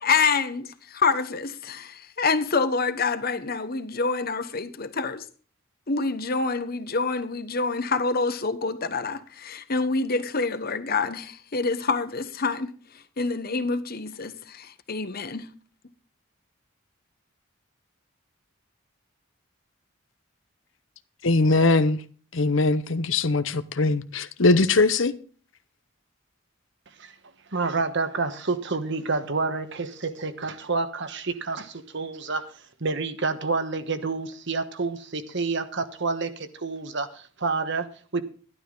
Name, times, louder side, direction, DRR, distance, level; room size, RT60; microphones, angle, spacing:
voice 1, 0.0-5.2 5.9-12.7 13.2-15.5, left 4 dB, 50° left, 1.1 m, -27 dB
voice 2, 21.2-22.0 22.3-25.1, left 3 dB, 65° left, 0.9 m, -21 dB
voice 3, 27.5-32.5 32.8-38.2, right 3 dB, 60° right, 1.3 m, -29 dB
12.5 x 12.0 x 3.9 m
head